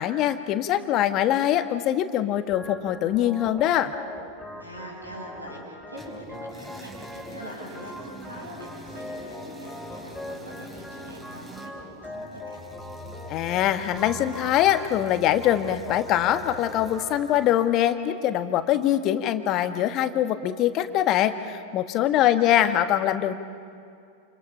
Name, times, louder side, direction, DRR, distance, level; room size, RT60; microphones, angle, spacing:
voice 1, 0.0-3.9 13.3-23.3, left 12 dB, 35° left, 9 dB, 1.4 m, -23 dB
Organ, 2.5-17.5, left 1 dB, 5° left, 5.0 m, -41 dB
voice 2, 4.6-12.6 22.2-22.8, equal, 85° right, -2 dB, 8.0 m, -43 dB
sound 1, 6.0-17.7, right 1 dB, 15° right, 4.9 m, -45 dB
29.0 x 28.5 x 5.7 m, 2.4 s
figure-of-eight pair, 90°, 0 cm